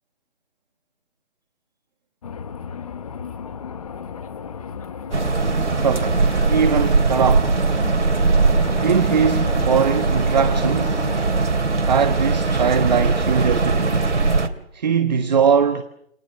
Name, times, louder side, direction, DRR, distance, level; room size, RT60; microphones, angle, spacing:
sound 1, 2.2-11.2, left 6 dB, 30° left, 1.2 m, -34 dB
sound 2, 5.1-14.5, right 3 dB, 80° right, 3.1 m, -20 dB
voice 1, 5.8-7.6 8.8-11.1 11.8-14.0 14.7-15.8, right 6 dB, 35° right, 1.4 m, -21 dB
28.5 x 25.5 x 6.5 m
hypercardioid pair, 160°, 35 cm